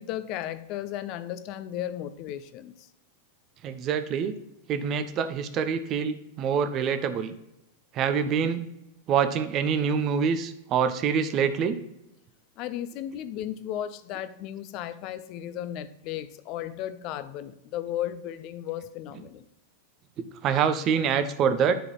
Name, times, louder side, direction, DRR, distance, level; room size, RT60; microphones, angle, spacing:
voice 1, 0.0-2.9 12.6-19.4, left 11 dB, 40° left, 0.5 m, -35 dB
voice 2, 3.6-4.3 4.7-7.3 7.9-8.6 9.1-11.8 20.2-21.7, right 7 dB, 35° right, 0.7 m, -25 dB
10.0 x 4.0 x 4.6 m
figure-of-eight pair, 90°, 0 cm